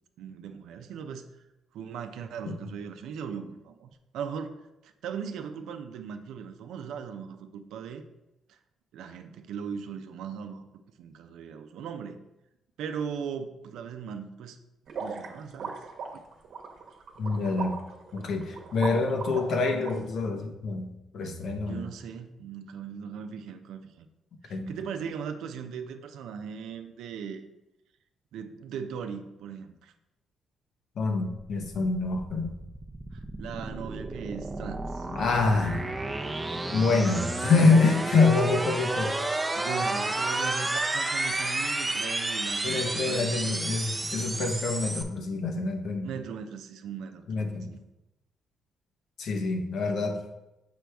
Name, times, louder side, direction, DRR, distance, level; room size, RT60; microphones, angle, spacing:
voice 1, 0.2-1.3 1.7-4.6 4.8-8.0 8.5-8.6 8.9-10.7 11.0-12.2 12.8-14.6 15.0-15.8 16.1-16.2 21.7-24.1 24.4-27.4 28.3-29.9 33.1-35.1 39.5-43.6 46.0-47.8, right 7 dB, 85° right, 7 dB, 0.5 m, -38 dB
sound 1, 14.9-19.9, right 5 dB, 65° right, 0.9 m, -38 dB
voice 2, 17.2-17.8 18.1-20.9 21.1-21.9 24.5-24.7 31.0-32.5 35.1-35.9 36.7-39.2 42.6-46.1 47.3-47.7 49.2-50.2, left 3 dB, 65° left, 4 dB, 1.0 m, -26 dB
sound 2, 31.6-45.0, right 2 dB, 15° right, 0.6 m, -31 dB
6.1 x 5.1 x 3.4 m, 0.94 s
cardioid pair, 90°, 0 cm